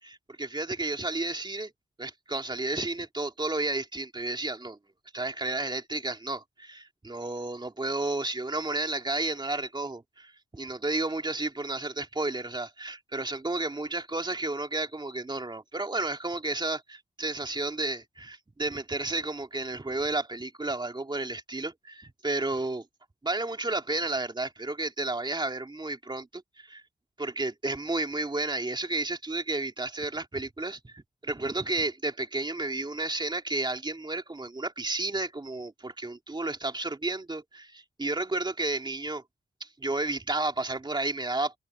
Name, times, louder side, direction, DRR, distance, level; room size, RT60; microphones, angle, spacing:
voice 1, 0.0-1.7 2.0-4.8 5.1-22.8 23.2-26.8 27.2-39.2 39.6-41.6, right 2 dB, 25° right, 3.0 m, -32 dB
cardioid pair, 80°, 19 cm